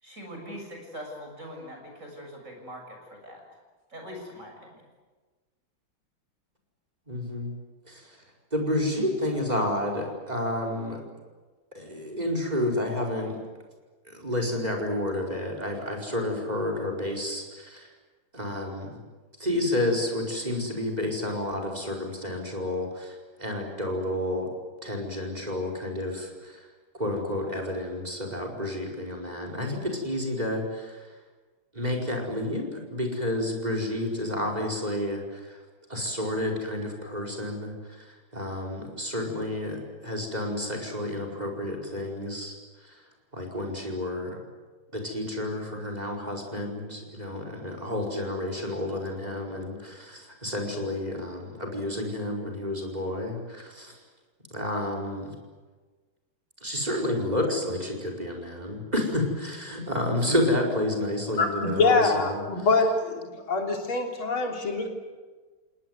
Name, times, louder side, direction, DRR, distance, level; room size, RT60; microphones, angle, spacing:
voice 1, 0.0-3.4 3.9-4.7, equal, 35° right, 2 dB, 7.3 m, -42 dB
voice 2, 7.1-7.5 7.9-8.2 8.5-11.0 11.7-13.4 14.0-17.9 18.3-19.0 19.4-24.5 24.8-26.7 26.9-31.1 31.7-35.6 35.9-42.5 42.8-43.0 43.3-44.4 44.9-54.0 54.5-55.3 56.6-62.7, left 1 dB, 20° right, 3 dB, 5.0 m, -30 dB
voice 3, 61.4-64.9, left 3 dB, 90° left, 2 dB, 4.2 m, -24 dB
29.5 x 18.5 x 9.4 m, 1.4 s
omnidirectional pair, 2.2 m